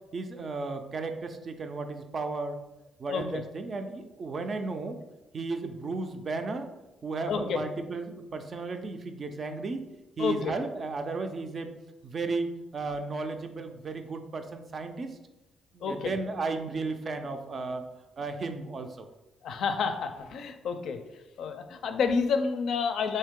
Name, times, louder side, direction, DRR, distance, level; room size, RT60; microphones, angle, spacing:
voice 1, 0.1-2.6 3.0-5.0 5.3-6.7 7.0-9.8 10.2-11.7 12.0-15.1 15.7-17.8 18.2-19.1, right 3 dB, 45° right, 6 dB, 0.4 m, -34 dB
voice 2, 3.1-3.4 7.3-7.6 10.2-10.5 15.8-16.2 19.4-21.0 21.4-23.2, left 5 dB, 70° left, 7 dB, 0.4 m, -29 dB
3.6 x 2.7 x 3.6 m, 0.99 s
cardioid pair, 90°, 0 cm